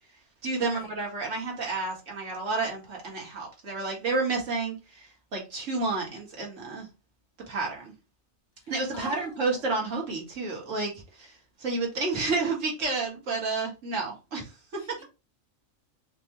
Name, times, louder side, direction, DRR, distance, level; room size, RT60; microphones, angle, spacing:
voice 1, 0.4-5.1 5.3-6.9 7.5-7.9 8.7-10.9 11.2-11.3 11.6-15.0, right 3 dB, 65° right, 1.6 m, -30 dB
voice 2, 8.6-9.6 14.8-15.0, left 3 dB, 75° left, 1.4 m, -45 dB
4.2 x 2.3 x 2.9 m
omnidirectional pair, 1.4 m